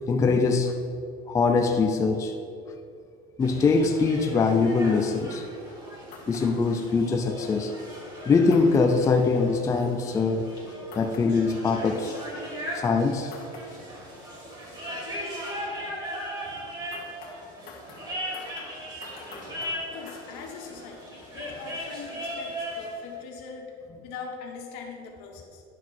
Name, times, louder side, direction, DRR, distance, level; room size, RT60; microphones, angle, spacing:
voice 1, 0.1-0.7 1.3-2.4 3.4-5.5 6.3-7.7 8.3-10.5 10.9-12.4 12.7-13.3, left 4 dB, 15° left, 5 dB, 0.4 m, -23 dB
sound 1, 3.4-22.9, equal, 20° right, 2.2 m, -38 dB
sound 2, 6.1-6.4 8.5-8.8 10.9-11.2 13.3-13.6 16.9-20.2, left 5 dB, 50° left, 1.6 m, -46 dB
voice 2, 19.9-23.7 24.0-25.6, left 5 dB, 75° left, 2 dB, 1.6 m, -41 dB
10.5 x 6.1 x 4.5 m, 2.5 s
cardioid pair, 150°, 19 cm